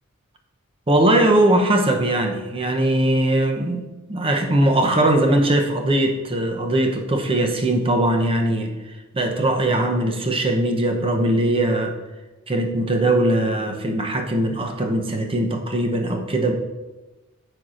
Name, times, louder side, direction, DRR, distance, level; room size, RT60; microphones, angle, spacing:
voice 1, 0.9-8.7 9.1-11.9 12.5-16.5, right 1 dB, 25° right, 3 dB, 0.7 m, -20 dB
12.0 x 4.5 x 2.5 m, 1.2 s
head